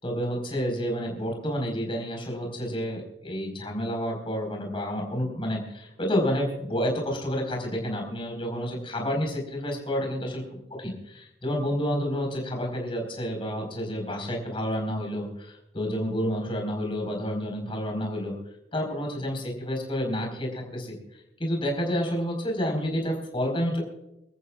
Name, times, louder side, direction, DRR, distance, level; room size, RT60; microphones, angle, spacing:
voice 1, 0.0-10.4 10.7-18.3 18.7-21.0 21.4-23.8, equal, 30° left, 1 dB, 4.7 m, -29 dB
25.0 x 14.0 x 2.4 m, 0.88 s
head